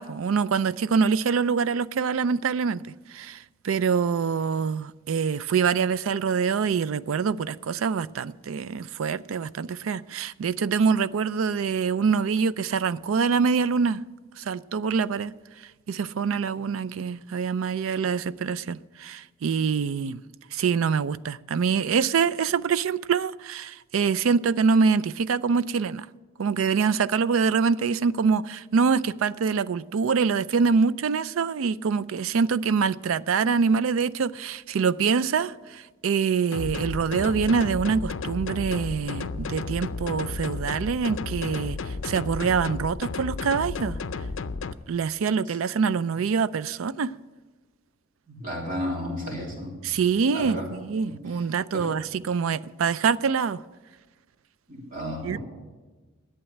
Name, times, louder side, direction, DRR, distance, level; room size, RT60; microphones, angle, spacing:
voice 1, 0.0-2.8 3.1-14.0 14.4-15.3 15.9-20.2 20.5-26.1 26.4-44.0 44.9-47.1 49.8-53.6 55.2-55.4, right 5 dB, 80° right, 0.4 m, -25 dB
sound 1, 36.5-44.7, left 4 dB, 70° left, 0.5 m, -33 dB
voice 2, 48.3-49.7 50.3-50.7 51.7-51.9 54.7-55.4, equal, 45° right, 3.4 m, -32 dB
11.0 x 8.2 x 8.7 m
head